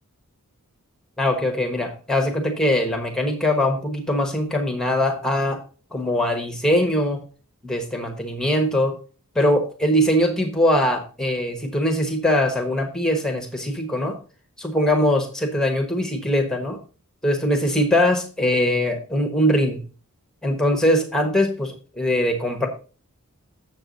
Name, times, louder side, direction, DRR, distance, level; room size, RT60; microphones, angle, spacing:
voice 1, 1.2-5.6 5.9-7.2 7.6-8.9 9.3-14.2 14.6-16.8 17.2-19.8 20.4-22.7, left 1 dB, 5° left, 3 dB, 1.1 m, -21 dB
7.8 x 7.3 x 3.9 m, 0.36 s
head